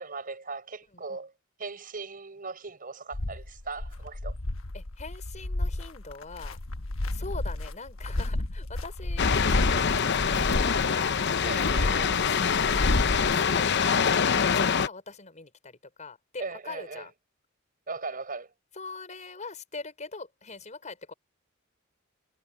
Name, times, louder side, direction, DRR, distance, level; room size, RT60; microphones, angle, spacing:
voice 1, 0.0-1.3 1.6-4.4 11.4-12.2 16.4-17.1 17.9-18.5, right 4 dB, 45° right, 5.1 m, -38 dB
sound 1, 3.1-13.4, left 1 dB, 85° left, 1.2 m, -31 dB
voice 2, 4.7-6.6 7.1-11.1 12.3-12.9 13.3-17.1 18.7-21.1, left 3 dB, 35° left, 5.4 m, -42 dB
sound 2, 9.2-14.9, left 6 dB, 60° left, 0.8 m, -25 dB
head